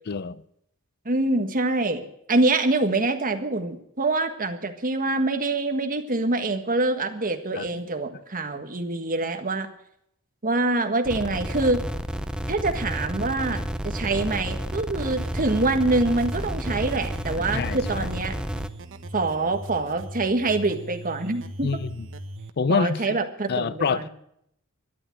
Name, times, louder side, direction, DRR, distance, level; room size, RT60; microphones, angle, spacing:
voice 1, 0.1-0.4 7.5-7.7 17.5-18.1 21.6-22.1 22.6-23.2 23.5-24.1, left 5 dB, 45° left, 0.5 m, -26 dB
voice 2, 1.1-2.0 2.3-9.7 10.4-11.8 12.5-18.4 19.1-21.7 22.7-24.1, right 2 dB, 40° right, 1.6 m, -25 dB
sound 1, 11.0-18.7, equal, 5° right, 0.6 m, -31 dB
sound 2, 15.0-22.5, right 1 dB, 60° right, 1.3 m, -40 dB
13.0 x 11.0 x 7.7 m
head